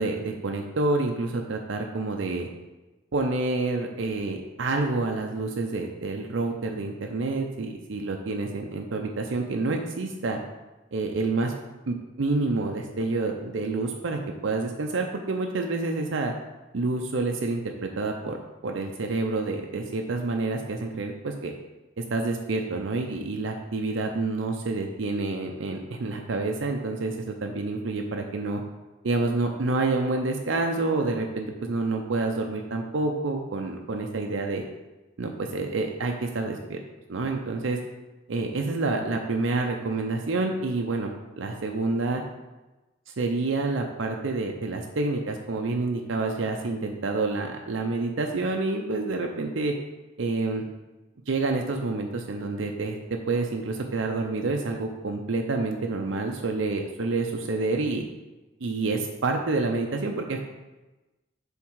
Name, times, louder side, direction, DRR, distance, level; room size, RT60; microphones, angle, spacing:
voice 1, 0.0-2.5 3.1-10.4 10.9-11.5 11.9-16.3 16.7-21.5 22.0-28.6 29.0-34.6 35.2-36.8 37.1-37.8 38.3-41.1 41.4-42.2 43.1-49.7 50.2-50.6 51.3-53.0 53.3-58.0 58.6-60.4, right 3 dB, 85° right, 2 dB, 0.6 m, -28 dB
7.2 x 3.6 x 4.6 m, 1.1 s
head